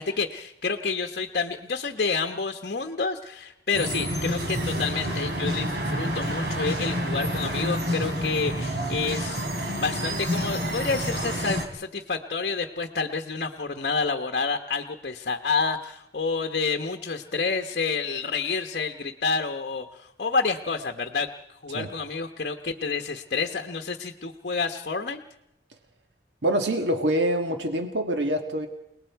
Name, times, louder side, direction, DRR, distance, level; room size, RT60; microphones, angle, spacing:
voice 1, 0.0-9.5 9.8-21.3 21.6-25.2, left 4 dB, 55° left, 5 dB, 1.1 m, -29 dB
sound 1, 3.7-11.7, equal, 65° right, 3.1 m, -28 dB
voice 2, 26.4-28.7, right 1 dB, 85° right, 5 dB, 1.6 m, -25 dB
30.0 x 19.0 x 4.7 m, 0.82 s
head